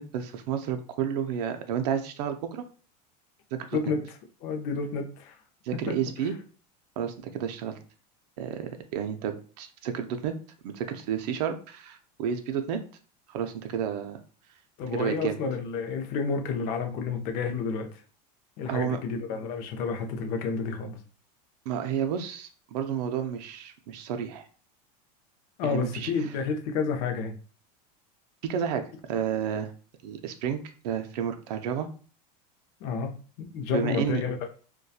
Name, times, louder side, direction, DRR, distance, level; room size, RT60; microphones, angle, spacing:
voice 1, 0.0-2.6 3.5-3.8 5.6-6.3 7.0-7.8 8.4-10.3 10.6-12.8 13.3-14.2 14.9-15.4 18.7-19.0 21.7-24.5 25.6-26.1 28.4-29.7 30.0-31.9 33.7-34.2, right 8 dB, 75° right, 6 dB, 0.4 m, -31 dB
voice 2, 4.4-5.4 14.8-18.0 18.6-21.0 25.6-27.3 32.8-33.1 33.4-34.5, left 5 dB, 45° left, 5 dB, 0.5 m, -30 dB
2.6 x 2.2 x 2.3 m, 0.39 s
supercardioid pair, 160°, 21 cm